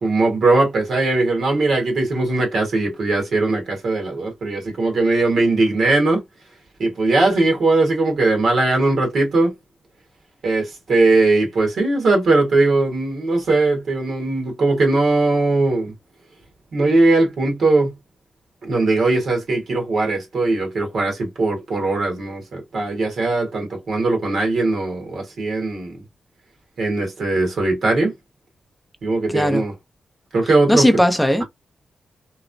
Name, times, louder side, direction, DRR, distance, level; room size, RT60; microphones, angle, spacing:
voice 1, 0.0-6.2 6.8-9.5 10.4-15.9 16.7-17.9 18.6-26.0 26.8-28.1 29.0-29.7 30.3-30.8, right 2 dB, 65° right, 1.3 m, -19 dB
voice 2, 29.3-29.6 30.7-31.4, equal, ahead, 0.5 m, -17 dB
3.0 x 2.0 x 2.5 m
wide cardioid pair, 125°, 0 cm